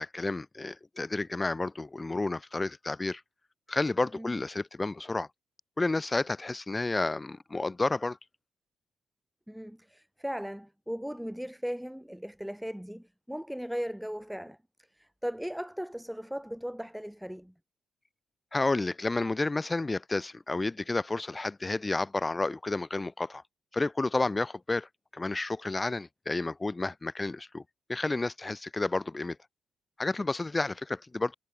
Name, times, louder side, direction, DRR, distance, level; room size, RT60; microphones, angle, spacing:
voice 1, 0.0-3.2 3.7-5.3 5.8-8.2 18.5-23.4 23.7-27.6 27.9-29.4 30.0-31.3, left 2 dB, 20° left, 0.9 m, -31 dB
voice 2, 9.5-14.6 14.9-17.5, equal, ahead, 5.6 m, -37 dB
cardioid pair, 90°, 0 cm